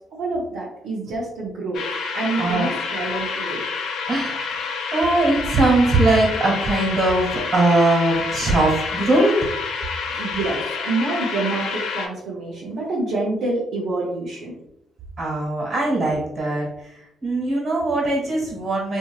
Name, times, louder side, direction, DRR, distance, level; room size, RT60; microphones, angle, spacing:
voice 1, 0.1-1.8 2.1-3.6 10.1-14.6, right 2 dB, 80° right, -6 dB, 0.6 m, -27 dB
sound 1, 1.7-12.1, left 5 dB, 80° left, 0.4 m, -28 dB
voice 2, 2.4-2.7 4.1-9.4 15.2-19.0, right 2 dB, 50° right, -3 dB, 1.4 m, -21 dB
2.8 x 2.6 x 2.4 m, 0.81 s
cardioid pair, 90°, 0 cm